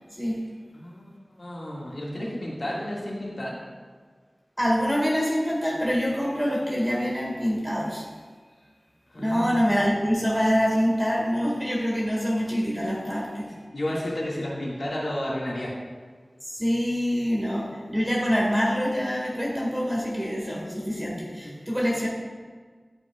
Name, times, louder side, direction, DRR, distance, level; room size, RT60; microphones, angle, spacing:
voice 1, 0.7-1.1 1.4-3.6 9.1-9.8 13.7-15.7 21.4-21.5, left 1 dB, 75° left, -5 dB, 1.7 m, -32 dB
voice 2, 4.6-8.1 9.2-13.5 16.5-22.1, equal, 5° right, -4 dB, 1.7 m, -25 dB
12.0 x 5.6 x 2.3 m, 1.5 s
wide cardioid pair, 40°, 0 cm